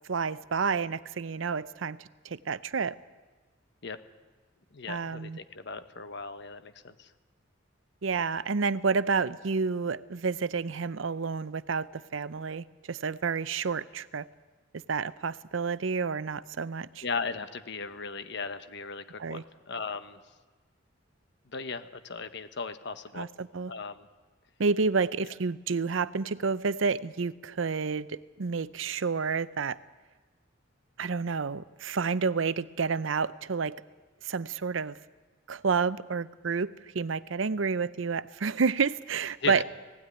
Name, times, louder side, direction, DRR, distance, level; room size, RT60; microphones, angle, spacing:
voice 1, 0.1-3.0 4.9-5.4 8.0-14.3 14.9-17.0 19.2-19.4 23.1-23.7 24.6-29.8 31.0-33.8 34.2-35.0 35.5-39.6, right 5 dB, 75° right, 17 dB, 0.6 m, -30 dB
voice 2, 4.7-7.1 17.0-20.2 21.5-23.3 23.7-24.1 39.4-39.6, left 4 dB, 60° left, 10 dB, 1.2 m, -37 dB
18.0 x 16.0 x 10.0 m, 1.3 s
head